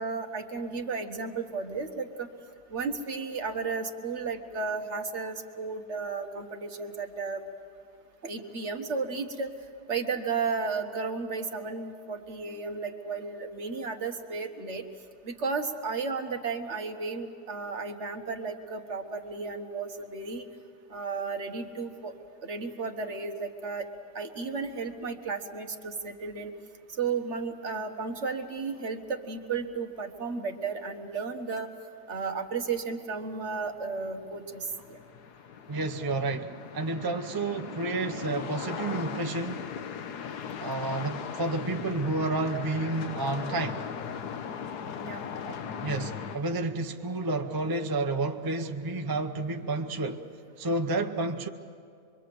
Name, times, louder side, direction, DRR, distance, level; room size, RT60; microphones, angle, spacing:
voice 1, 0.0-2.3 2.7-7.4 8.2-9.5 9.9-14.8 15.2-20.4 20.9-22.1 22.4-23.9 24.1-26.5 27.0-31.7 32.1-35.0 45.0-45.2, right 4 dB, 45° right, 1.6 m, -33 dB
sound 1, 33.2-46.4, left 7 dB, 80° left, 1.5 m, -39 dB
voice 2, 35.7-39.7 40.6-43.9 45.5-50.2 50.6-51.5, right 2 dB, 25° right, 0.5 m, -30 dB
25.5 x 23.0 x 7.7 m
omnidirectional pair, 1.7 m